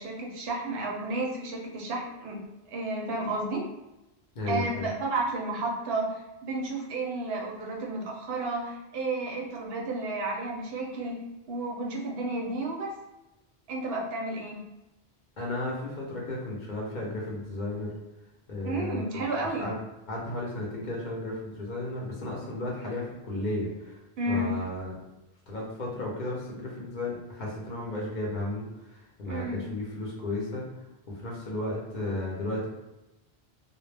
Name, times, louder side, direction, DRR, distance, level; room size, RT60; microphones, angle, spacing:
voice 1, 0.0-2.4 2.7-3.7 4.5-11.2 11.5-12.9 13.7-14.6 18.6-19.7 24.2-24.5 29.2-29.6, right 2 dB, 75° right, -1 dB, 0.8 m, -32 dB
voice 2, 4.4-4.9 15.4-18.0 18.5-19.2 19.5-19.7 20.1-24.0 24.3-25.0 25.5-30.7 31.1-32.7, left 1 dB, 55° left, -3 dB, 0.7 m, -34 dB
2.1 x 2.0 x 3.2 m, 0.97 s
omnidirectional pair, 1.0 m